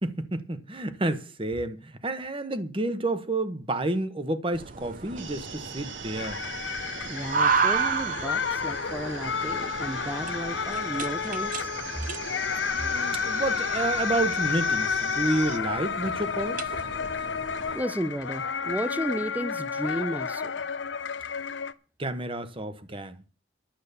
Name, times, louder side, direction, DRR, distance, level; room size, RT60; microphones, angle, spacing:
voice 1, 0.0-6.4 12.7-16.7 22.0-23.2, right 2 dB, 25° right, 1.1 m, -30 dB
sound 1, 4.5-17.8, right 5 dB, 45° right, 0.8 m, -33 dB
sound 2, 5.2-15.6, right 6 dB, 75° right, 1.6 m, -41 dB
sound 3, 6.2-21.7, left 6 dB, 65° left, 0.7 m, -31 dB
voice 2, 7.1-11.7 17.7-20.5, right 1 dB, 10° right, 0.6 m, -33 dB
11.5 x 8.5 x 6.8 m
head